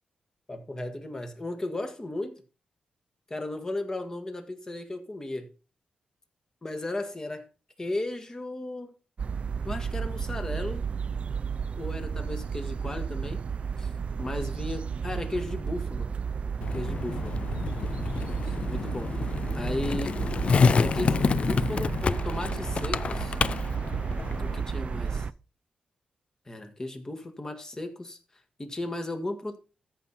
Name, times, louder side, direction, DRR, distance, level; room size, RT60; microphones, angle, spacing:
voice 1, 0.5-2.4 3.3-5.5 6.6-7.5 7.8-8.9 9.6-10.8 11.7-13.4 13.8-13.9 14.2-16.1 16.7-17.3 18.5-19.2 19.6-20.2 20.7-23.4 24.4-25.3 26.4-28.2 28.6-29.6, left 2 dB, 20° left, 7 dB, 1.7 m, -35 dB
sound 1, 9.2-25.3, right 6 dB, 45° right, 0.4 m, -32 dB
Skateboard, 16.6-24.6, left 5 dB, 45° left, 0.4 m, -28 dB
13.5 x 5.7 x 4.2 m, 0.33 s
wide cardioid pair, 145°, 3 cm